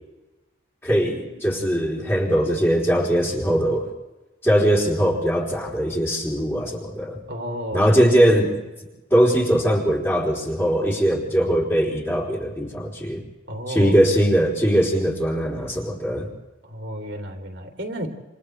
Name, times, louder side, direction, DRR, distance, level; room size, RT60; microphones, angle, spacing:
voice 1, 0.8-3.9 4.4-7.2 7.7-8.5 9.1-13.2 13.7-16.3, equal, 10° left, -3 dB, 3.7 m, -20 dB
voice 2, 7.3-8.4 13.5-14.0 16.6-18.1, equal, 65° right, 1 dB, 3.2 m, -32 dB
28.5 x 28.0 x 3.4 m, 1.1 s
head